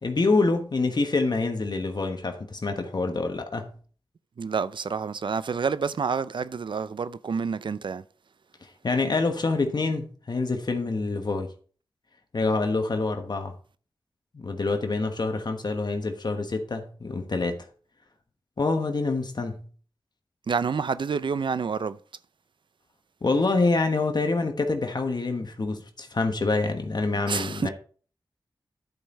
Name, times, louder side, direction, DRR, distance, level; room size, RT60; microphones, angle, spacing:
voice 1, 0.0-3.7 8.6-11.5 12.3-13.5 14.3-17.6 18.6-19.7 23.2-27.7, left 3 dB, 55° left, 1.2 m, -26 dB
voice 2, 4.4-8.0 20.5-22.0 27.3-27.7, right 5 dB, 70° right, 0.5 m, -28 dB
10.5 x 5.4 x 4.2 m
cardioid pair, 60°, 9 cm